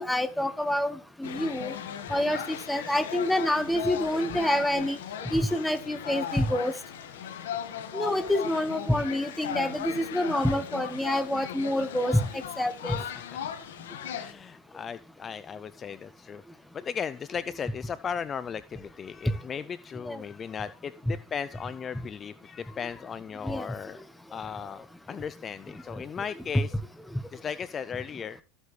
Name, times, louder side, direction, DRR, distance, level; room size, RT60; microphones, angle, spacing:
voice 1, 0.0-1.7 2.1-5.0 5.3-6.7 7.9-13.0 20.1-20.2 23.4-23.7, left 1 dB, 5° left, 10 dB, 1.1 m, -27 dB
sound 1, 1.2-14.3, left 9 dB, 90° left, 1.4 m, -37 dB
voice 2, 13.0-13.4 14.1-16.4 16.7-24.0 24.3-26.8 27.3-28.4, left 7 dB, 30° left, 15 dB, 0.4 m, -37 dB
14.0 x 8.2 x 3.2 m, 0.34 s
supercardioid pair, 110°, 0 cm